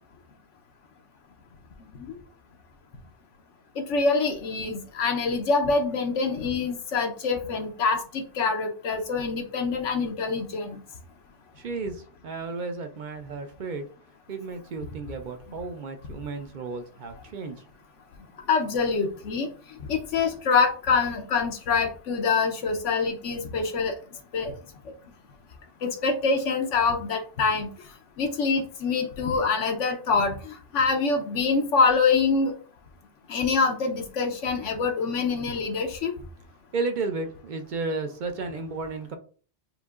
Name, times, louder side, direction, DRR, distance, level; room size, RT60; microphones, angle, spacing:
voice 1, 3.8-10.8 18.5-19.5 19.9-23.9 24.3-24.5 25.8-27.7 28.2-32.5 33.3-36.1, left 4 dB, 80° left, 1.0 m, -25 dB
voice 2, 11.6-13.8 14.3-17.6 36.7-39.2, right 3 dB, 55° right, 0.6 m, -33 dB
6.7 x 2.7 x 2.4 m
omnidirectional pair, 1.2 m